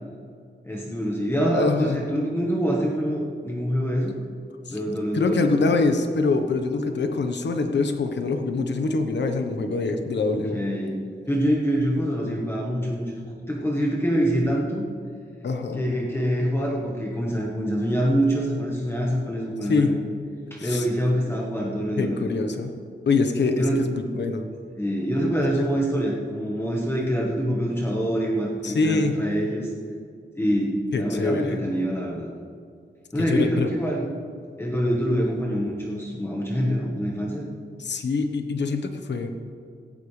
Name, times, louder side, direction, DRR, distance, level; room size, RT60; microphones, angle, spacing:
voice 1, 0.6-4.1 4.7-5.5 10.5-11.0 11.3-14.8 15.7-20.0 20.5-22.3 23.6-23.8 24.8-29.7 30.4-32.3 33.1-34.1 34.6-37.5, equal, 15° left, -2 dB, 1.3 m, -25 dB
voice 2, 1.5-2.0 4.7-4.8 5.1-10.6 12.2-12.4 15.4-15.8 19.7-19.9 20.6-20.9 22.0-22.7 23.1-24.5 28.6-29.2 30.9-31.6 33.3-33.7 37.8-39.3, left 3 dB, 70° left, 6 dB, 1.1 m, -24 dB
17.5 x 15.0 x 3.3 m, 2.2 s
wide cardioid pair, 165°, 19 cm